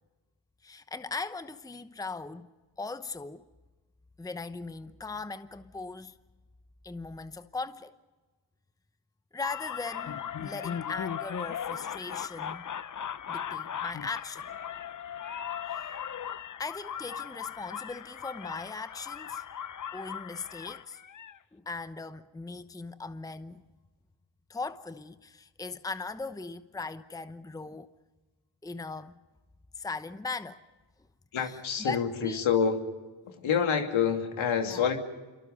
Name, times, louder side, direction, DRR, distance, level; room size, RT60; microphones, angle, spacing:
voice 1, 0.6-2.5 2.8-3.4 4.2-6.2 6.8-7.9 9.3-12.6 13.3-14.5 15.7-15.9 16.6-19.4 19.9-21.0 21.5-23.6 24.5-27.9 28.6-29.2 29.8-30.6 31.4-32.4 34.6-34.8, left 3 dB, 5° left, 0.9 m, -39 dB
sound 1, 9.4-21.4, left 8 dB, 40° left, 0.8 m, -38 dB
voice 2, 31.3-32.8 33.2-35.0, left 7 dB, 70° left, 2.8 m, -27 dB
27.5 x 23.5 x 5.3 m
cardioid pair, 65°, 49 cm